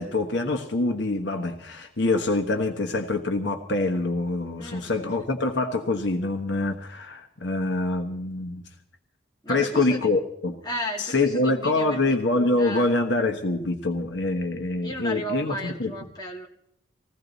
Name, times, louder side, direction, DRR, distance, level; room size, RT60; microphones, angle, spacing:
voice 1, 0.0-8.6 9.5-10.6 11.0-15.9, left 2 dB, 65° left, 4 dB, 1.2 m, -25 dB
voice 2, 4.6-4.9 9.4-10.1 10.6-12.0 12.6-12.9 14.8-16.5, equal, 20° left, -1 dB, 2.1 m, -34 dB
20.0 x 16.0 x 4.1 m, 0.71 s
head